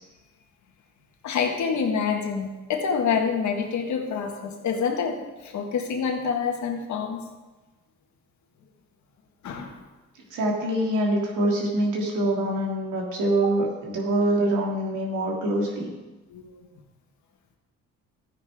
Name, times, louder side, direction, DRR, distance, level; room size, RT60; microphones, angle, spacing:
voice 1, 1.2-5.2 5.5-7.2 9.4-9.7 13.4-13.6 16.3-16.4, left 6 dB, 70° left, 3 dB, 1.8 m, -27 dB
voice 2, 10.3-15.9, right 1 dB, 85° right, -1 dB, 2.8 m, -25 dB
13.5 x 9.6 x 3.7 m, 1.2 s
cardioid pair, 90°, 30 cm